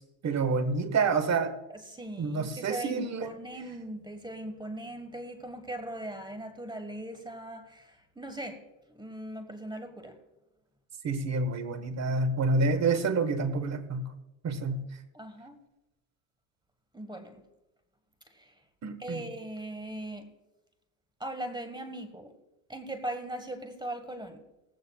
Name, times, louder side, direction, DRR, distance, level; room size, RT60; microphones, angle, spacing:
voice 1, 0.2-1.5 2.2-3.3 11.0-14.1 14.4-14.9 18.8-19.2, right 3 dB, 30° right, 11 dB, 1.4 m, -28 dB
voice 2, 1.7-8.6 8.9-10.2 15.1-15.5 16.9-17.4 18.3-18.5 19.0-20.3 21.2-22.3 22.7-24.4, right 1 dB, 10° right, 9 dB, 1.3 m, -39 dB
18.5 x 15.5 x 2.3 m, 0.98 s
supercardioid pair, 110°, 49 cm